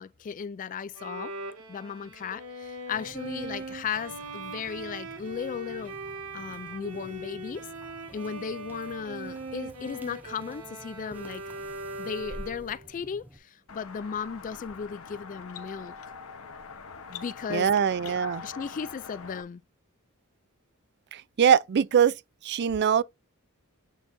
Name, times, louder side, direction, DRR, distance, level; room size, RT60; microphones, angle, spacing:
voice 1, 0.0-1.3 1.7-5.9 6.3-7.6 8.1-11.4 12.0-16.1 17.1-17.7 18.1-18.2 18.4-19.6, left 6 dB, 35° left, 0.3 m, -36 dB
Bowed string instrument, 1.0-12.8, right 2 dB, 85° right, 1.9 m, -40 dB
sound 1, 2.9-13.4, equal, 10° right, 0.8 m, -50 dB
sound 2, 13.7-19.4, left 5 dB, 70° left, 1.0 m, -43 dB
voice 2, 17.5-18.4 21.1-22.1 22.4-23.0, right 8 dB, 50° right, 0.4 m, -22 dB
8.9 x 4.5 x 2.6 m
head